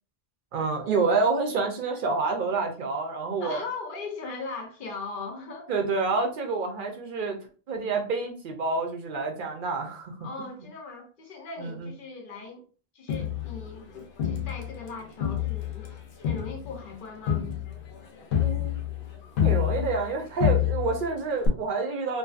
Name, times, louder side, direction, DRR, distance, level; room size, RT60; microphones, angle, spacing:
voice 1, 0.5-3.6 5.7-7.4 7.7-10.2 11.6-11.9 18.4-18.8 19.4-22.2, right 4 dB, 60° right, 0.7 m, -28 dB
voice 2, 3.4-5.7 10.2-12.6 12.9-15.9 16.2-17.5, left 4 dB, 60° left, 0.7 m, -39 dB
Crowd, 13.1-14.9 15.2-20.1 20.4-21.1 21.4-21.5, left 11 dB, 85° left, 0.9 m, -28 dB
2.6 x 2.4 x 2.3 m
omnidirectional pair, 1.0 m